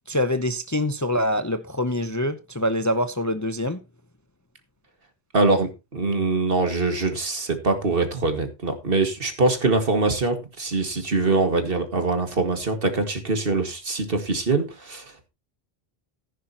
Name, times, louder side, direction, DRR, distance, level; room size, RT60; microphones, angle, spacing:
voice 1, 0.1-3.8, left 1 dB, 20° left, 0.6 m, -25 dB
voice 2, 5.3-15.3, right 3 dB, 60° right, 2.2 m, -23 dB
15.0 x 10.0 x 2.9 m
omnidirectional pair, 1.1 m